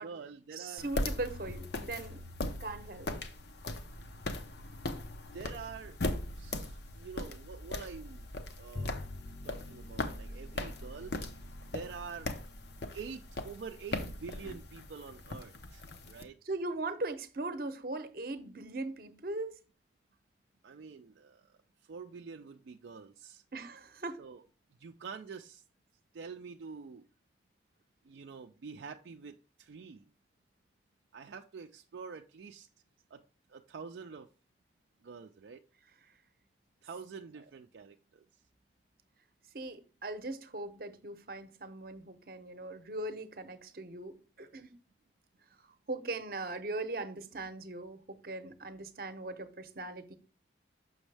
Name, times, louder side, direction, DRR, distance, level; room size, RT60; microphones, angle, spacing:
voice 1, 0.0-0.9 5.3-6.0 6.3-8.3 8.6-9.0 9.4-11.2 11.7-12.3 12.9-16.4 20.6-21.5 21.9-23.4 24.2-24.4 24.8-25.6 26.1-27.1 28.0-30.0 31.1-32.7 33.1-33.2 33.5-34.3 35.0-35.6 36.8-38.2, right 5 dB, 70° right, 0.4 m, -46 dB
voice 2, 0.6-2.2 2.6-3.1 16.5-19.6 23.5-24.2 39.5-44.7 45.9-50.2, right 2 dB, 50° right, 0.7 m, -39 dB
sound 1, 0.8-16.2, left 2 dB, 65° left, 0.7 m, -40 dB
Bowed string instrument, 8.7-15.2, left 2 dB, 30° left, 0.4 m, -49 dB
6.3 x 6.1 x 3.3 m
head